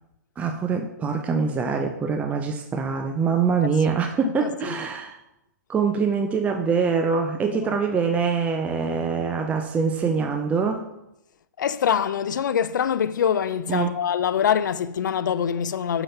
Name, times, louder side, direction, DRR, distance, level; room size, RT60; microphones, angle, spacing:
voice 1, 0.4-5.2 5.7-10.8 13.7-14.0, right 5 dB, 15° right, 0.5 m, -24 dB
voice 2, 4.2-4.7 7.7-7.8 11.6-16.0, left 8 dB, 75° left, 0.4 m, -24 dB
5.9 x 5.3 x 5.7 m
hypercardioid pair, 130°, 10 cm